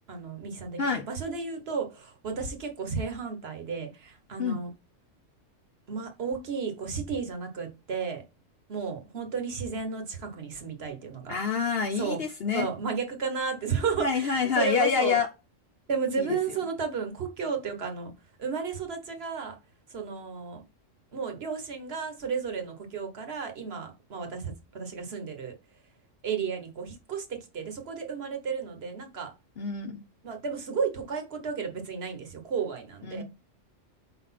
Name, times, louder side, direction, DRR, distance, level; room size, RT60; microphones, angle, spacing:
voice 1, 0.1-4.7 5.9-8.2 8.7-11.4 12.0-12.2 12.5-15.2 15.9-18.1 18.4-19.6 19.9-20.6 21.1-25.5 26.2-29.3 30.2-33.2, right 5 dB, 50° right, 1.4 m, -33 dB
voice 2, 11.3-12.7 14.0-15.3 16.2-16.4 29.6-30.0 33.0-33.2, left 6 dB, 55° left, 0.8 m, -27 dB
4.9 x 4.1 x 5.6 m
omnidirectional pair, 1.4 m